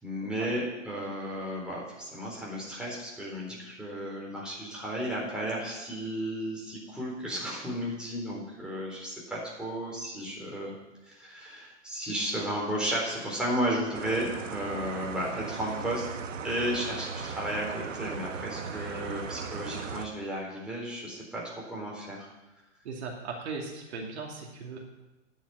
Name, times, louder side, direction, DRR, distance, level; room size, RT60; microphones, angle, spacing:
voice 1, 0.0-10.7 11.0-16.0 16.4-22.3, equal, ahead, -4 dB, 4.1 m, -33 dB
sound 1, 13.9-20.0, right 6 dB, 80° right, 1.1 m, -38 dB
voice 2, 22.8-24.8, right 4 dB, 60° right, 0 dB, 2.5 m, -38 dB
10.0 x 7.0 x 9.1 m, 1.0 s
hypercardioid pair, 115°, 37 cm